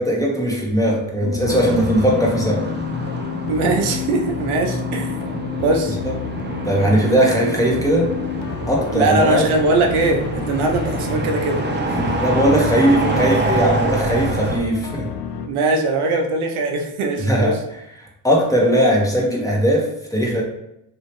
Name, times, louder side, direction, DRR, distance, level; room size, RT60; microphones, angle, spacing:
voice 1, 0.0-2.7 6.0-6.2 6.6-8.1 8.7-9.5 12.0-15.1 17.2-17.6 18.0-20.4, equal, 5° left, -2 dB, 1.1 m, -19 dB
sound 1, 1.2-15.5, left 7 dB, 55° left, 0.5 m, -30 dB
sound 2, 1.5-14.6, right 2 dB, 20° right, 0.7 m, -26 dB
voice 2, 3.5-5.1 5.6-6.0 7.0-7.2 8.9-11.6 15.5-17.6, right 3 dB, 80° right, 2 dB, 0.7 m, -20 dB
3.3 x 2.7 x 3.0 m, 0.83 s
supercardioid pair, 50°, 49 cm